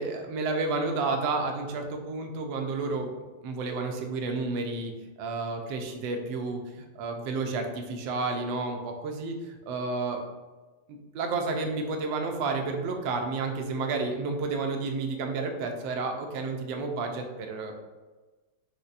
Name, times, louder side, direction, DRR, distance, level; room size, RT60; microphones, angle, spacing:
voice 1, 0.0-3.1 3.4-4.9 5.2-6.6 7.0-10.2 10.9-17.7, right 3 dB, 75° right, 3 dB, 1.2 m, -31 dB
5.3 x 2.1 x 2.4 m, 1.2 s
omnidirectional pair, 2.4 m